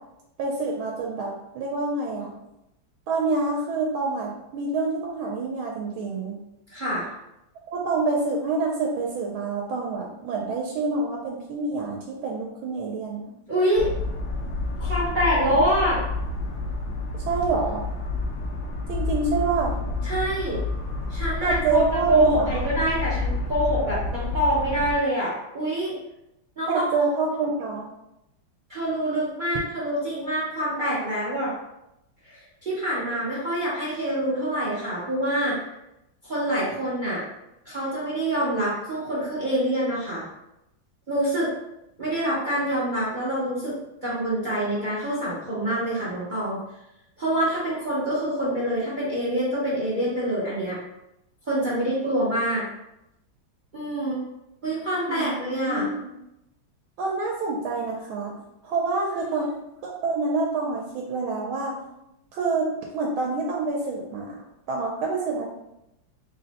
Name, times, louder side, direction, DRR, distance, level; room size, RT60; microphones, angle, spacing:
voice 1, 0.4-2.3 3.1-6.3 7.7-13.3 17.2-17.8 18.9-19.8 21.4-22.6 26.7-27.9 55.1-56.1 57.0-58.3 58.6-59.5 59.8-61.8 62.3-64.4 64.7-65.5, right 3 dB, 90° right, -1 dB, 1.4 m, -27 dB
voice 2, 6.7-7.1 13.5-13.9 14.8-16.0 20.0-20.6 21.1-21.8 22.1-25.9 26.6-26.8 28.7-31.5 32.2-35.6 36.2-37.2 37.6-40.3 41.1-41.5 42.0-43.7 44.0-46.6 47.2-50.8 51.5-52.6 53.7-54.2 54.6-55.9, right 1 dB, 65° right, -8 dB, 0.4 m, -25 dB
sound 1, 13.8-25.0, left 2 dB, 75° left, 0.9 m, -29 dB
3.8 x 2.1 x 4.0 m, 0.88 s
omnidirectional pair, 2.2 m